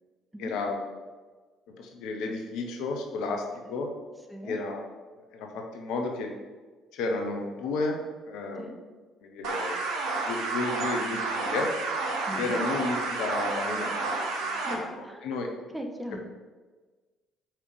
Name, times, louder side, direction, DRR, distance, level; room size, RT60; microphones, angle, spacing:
voice 1, 0.4-0.8 1.8-3.4 3.7-3.9 4.4-4.8 5.3-6.3 6.9-8.0 8.3-8.7 9.2-9.8 10.2-11.7 12.4-15.5, left 3 dB, 65° left, 3 dB, 0.8 m, -32 dB
voice 2, 4.3-4.6 8.6-8.8 12.3-12.6 14.6-16.2, equal, 10° right, 3 dB, 1.0 m, -40 dB
sound 1, 9.4-14.7, right 3 dB, 65° right, 1.0 m, -30 dB
5.0 x 4.5 x 5.0 m, 1.3 s
hypercardioid pair, 50°, 0 cm